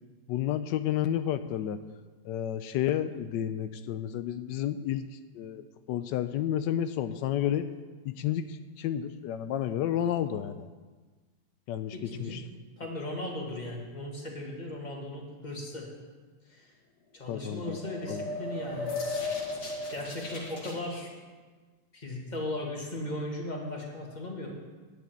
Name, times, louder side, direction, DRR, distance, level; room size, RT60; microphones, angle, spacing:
voice 1, 0.3-1.8 2.2-7.7 8.0-10.7 11.7-12.4 17.3-17.8 18.1-18.2, left 10 dB, 90° left, 11 dB, 1.2 m, -31 dB
voice 2, 11.9-12.4 12.8-15.9 16.5-16.7 17.1-18.9 19.9-21.1 21.9-24.5, left 1 dB, 25° left, -1 dB, 2.2 m, -37 dB
sound 1, 17.4-20.8, left 3 dB, 70° left, 2.4 m, -35 dB
10.0 x 7.6 x 9.0 m, 1.4 s
omnidirectional pair, 1.9 m